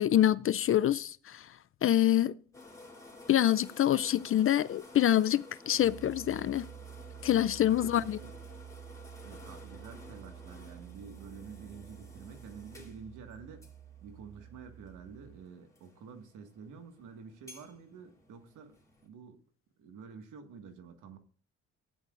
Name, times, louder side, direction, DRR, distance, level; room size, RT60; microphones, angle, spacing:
voice 1, 0.0-1.5 1.8-2.3 3.3-6.7 7.2-8.2, left 11 dB, 45° left, 0.4 m, -26 dB
sound 1, 2.5-19.1, left 2 dB, 10° left, 3.4 m, -54 dB
Piano, 5.8-15.4, right 11 dB, 20° right, 5.8 m, -50 dB
voice 2, 7.7-8.3 9.2-13.6 14.0-18.8 19.0-19.4 19.8-21.2, right 6 dB, 80° right, 1.8 m, -49 dB
15.5 x 10.0 x 2.5 m
cardioid pair, 90°, 30 cm